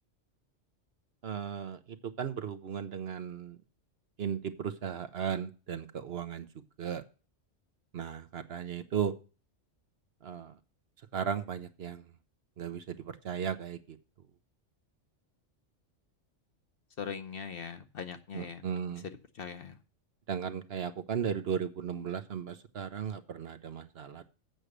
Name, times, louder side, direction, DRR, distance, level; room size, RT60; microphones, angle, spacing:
voice 1, 1.2-3.6 4.2-6.5 6.8-7.0 7.9-9.1 10.2-10.6 11.1-12.0 12.6-14.0 18.3-19.1 20.3-24.3, right 8 dB, 60° right, 10 dB, 1.0 m, -36 dB
voice 2, 17.0-18.6 19.3-19.8, left 6 dB, 55° left, 8 dB, 1.0 m, -40 dB
7.9 x 6.2 x 6.6 m, 0.34 s
omnidirectional pair, 1.3 m